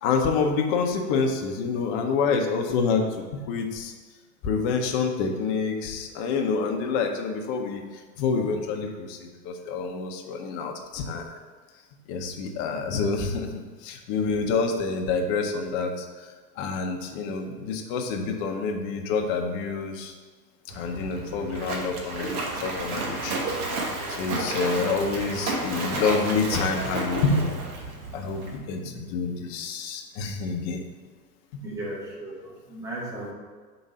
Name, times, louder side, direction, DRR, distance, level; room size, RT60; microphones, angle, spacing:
voice 1, 0.0-3.9 4.4-11.2 12.1-20.1 20.7-23.4 24.1-27.5 28.1-30.8 31.5-31.6, left 4 dB, 35° left, 3 dB, 0.7 m, -27 dB
Splash splatter, 20.7-28.6, right 2 dB, 60° right, 1.4 m, -32 dB
voice 2, 31.6-33.3, right 1 dB, 5° right, -5 dB, 1.4 m, -36 dB
5.1 x 3.9 x 5.5 m, 1.4 s
hypercardioid pair, 125°, 50 cm